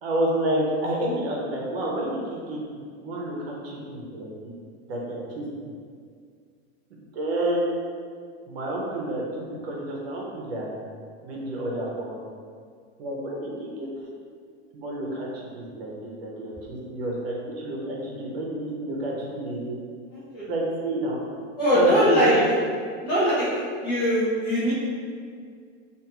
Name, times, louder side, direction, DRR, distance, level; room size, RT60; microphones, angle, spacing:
voice 1, 0.0-2.6 3.0-4.5 4.9-5.7 6.9-7.7 8.5-10.7 11.2-12.2 13.0-13.9 14.7-19.8 20.5-21.2 21.7-22.5, right 1 dB, 65° right, -3 dB, 0.7 m, -29 dB
voice 2, 20.1-20.4 21.6-22.3 23.0-23.5 23.8-24.7, equal, 30° left, -12 dB, 0.6 m, -21 dB
2.5 x 2.3 x 2.9 m, 2.1 s
supercardioid pair, 180°, 33 cm